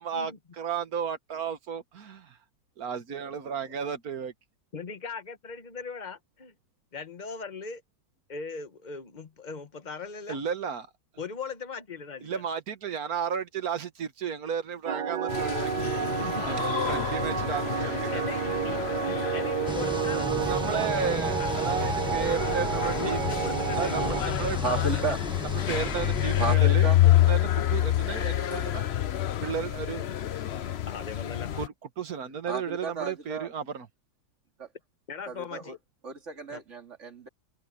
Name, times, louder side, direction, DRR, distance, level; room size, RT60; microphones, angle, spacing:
voice 1, 0.0-2.4 2.8-4.3 10.3-10.9 12.2-16.2 16.5-18.2 20.5-23.2 23.7-24.6 25.7-26.9 27.2-28.9 29.4-30.1 31.5-33.9, right 7 dB, 60° right, 1.9 m, -33 dB
voice 2, 4.7-6.5 6.9-7.8 8.3-10.4 11.2-12.4 16.2-16.5 18.1-22.5 23.0-25.2 30.9-31.5 35.1-35.8 36.5-36.6, left 5 dB, 30° left, 1.3 m, -39 dB
sound 1, 14.9-24.2, right 8 dB, 80° right, 1.6 m, -30 dB
sound 2, 15.3-31.7, left 13 dB, 55° left, 0.7 m, -28 dB
sound 3, 19.7-26.6, equal, 5° right, 1.4 m, -36 dB
voice 3, 23.2-23.5 24.6-25.2 26.4-27.0 32.5-33.5 34.6-34.7 35.3-35.8 36.0-37.3, right 4 dB, 45° right, 2.6 m, -33 dB
open air
omnidirectional pair, 1.8 m